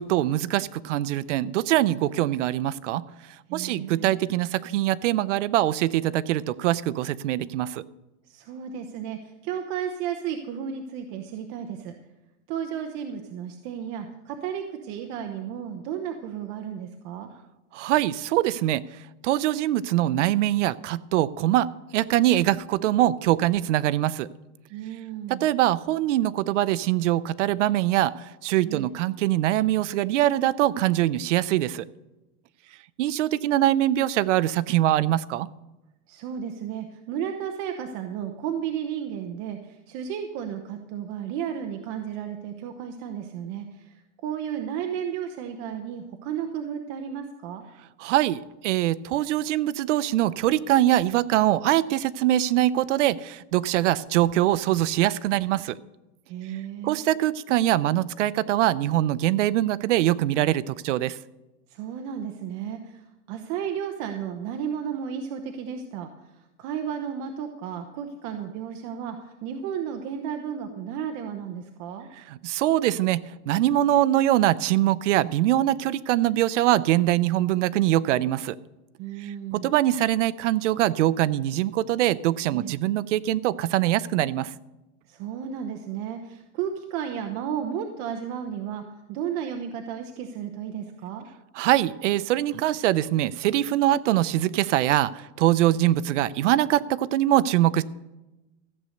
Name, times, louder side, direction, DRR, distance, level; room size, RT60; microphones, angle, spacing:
voice 1, 0.0-3.0 3.5-7.8 17.7-18.8 19.2-21.7 21.9-24.3 25.3-31.8 33.0-35.5 48.0-55.8 56.8-61.2 72.3-78.6 79.2-84.5 91.6-97.8, right 14 dB, 75° right, 18 dB, 0.7 m, -23 dB
voice 2, 3.5-4.2 8.3-11.9 12.5-17.3 24.7-25.5 28.6-28.9 36.1-47.6 56.3-57.0 61.7-72.1 79.0-79.7 82.5-82.8 85.1-88.8 89.1-91.3, right 8 dB, 40° right, 5 dB, 0.9 m, -33 dB
14.5 x 8.0 x 6.4 m, 1.0 s
supercardioid pair, 165°, 36 cm